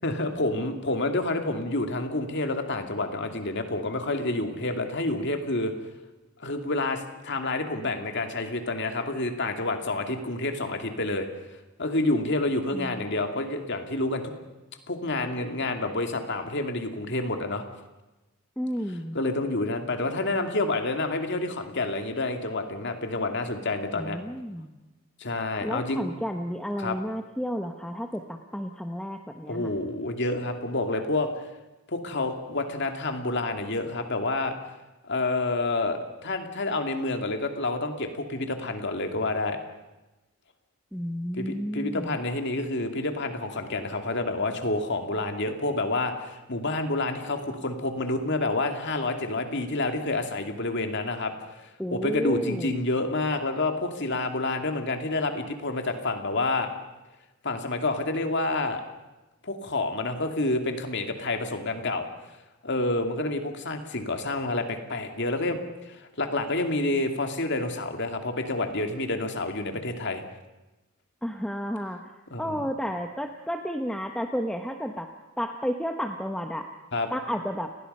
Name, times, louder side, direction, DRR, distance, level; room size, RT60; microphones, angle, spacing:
voice 1, 0.0-5.7 6.4-11.3 11.8-14.3 14.9-17.6 19.1-24.2 25.2-26.0 26.8-27.0 29.5-31.3 31.9-34.5 35.0-39.6 41.3-56.7 57.4-58.8 59.4-62.1 62.6-70.2 72.3-72.6 76.9-77.1, left 2 dB, 55° left, 5 dB, 2.4 m, -28 dB
voice 2, 12.7-13.1 18.6-19.2 24.0-24.8 25.6-29.7 40.9-42.2 51.8-52.7 71.2-72.1 72.4-76.7 77.1-77.7, equal, 5° left, 4 dB, 1.0 m, -32 dB
29.5 x 19.5 x 5.5 m, 1.1 s
head